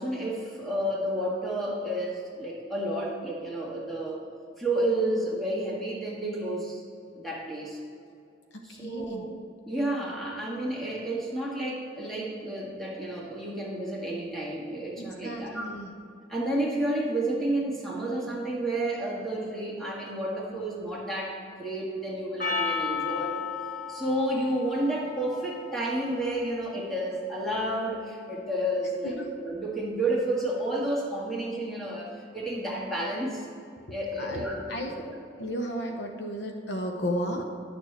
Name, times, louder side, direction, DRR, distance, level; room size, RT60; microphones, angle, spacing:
voice 1, 0.0-4.3 4.6-6.8 7.2-7.8 8.6-9.3 9.7-15.7 16.3-23.4 23.9-33.5 33.9-34.6 35.0-35.2, right 1 dB, ahead, -6 dB, 1.8 m, -31 dB
voice 2, 8.5-9.3 15.0-15.9 29.2-29.3 34.2-34.9 35.4-37.5, equal, 65° left, 3 dB, 0.7 m, -33 dB
Percussion, 22.4-26.9, left 6 dB, 45° left, 1.1 m, -34 dB
11.0 x 6.6 x 3.4 m, 2.5 s
head